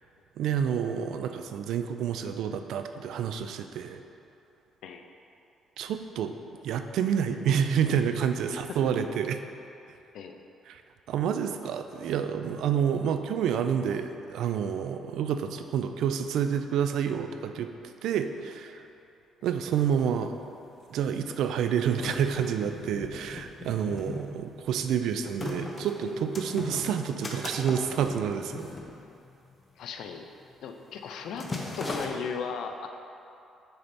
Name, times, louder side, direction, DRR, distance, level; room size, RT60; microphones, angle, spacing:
voice 1, 0.4-4.0 5.8-6.3 6.6-9.4 10.7-10.8 11.1-17.7 18.0-18.8 19.4-20.3 20.9-28.7, right 8 dB, 75° right, 8 dB, 0.4 m, -28 dB
sound 1, 19.6-19.7 19.8-20.7 21.3-29.6 29.9-30.2 30.5-30.8 31.1-32.1, left 2 dB, 25° left, 0.7 m, -38 dB
voice 2, 29.8-30.3 30.6-31.5 31.8-32.9, left 6 dB, 75° left, 5 dB, 0.5 m, -36 dB
6.4 x 4.4 x 4.1 m, 2.7 s
cardioid pair, 110°, 0 cm